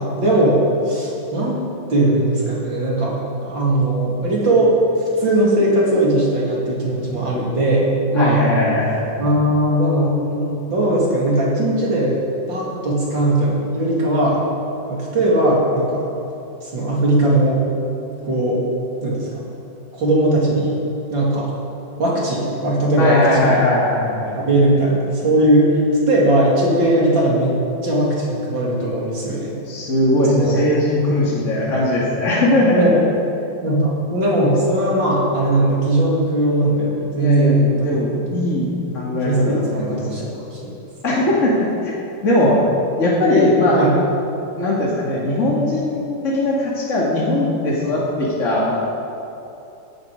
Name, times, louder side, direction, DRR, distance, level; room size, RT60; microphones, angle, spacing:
voice 1, 0.0-1.6 1.9-3.2 3.4-4.7 5.2-8.4 9.2-12.2 12.5-14.4 14.9-16.1 16.6-17.6 18.2-18.6 19.0-19.3 19.9-20.8 21.1-21.5 22.0-23.7 24.3-25.8 26.1-27.6 27.8-29.5 30.3-30.6 32.7-33.0 33.6-38.1 39.2-40.7 42.4-42.5 43.3-43.4 43.7-43.9, right 1 dB, 75° right, -4 dB, 3.8 m, -19 dB
voice 2, 8.1-9.1 23.0-24.4 29.7-33.0 37.2-40.3 41.0-41.9 42.2-42.6 43.0-43.8 44.6-48.7, left 1 dB, 40° left, -6 dB, 2.4 m, -19 dB
18.0 x 11.0 x 5.1 m, 2.8 s
omnidirectional pair, 2.0 m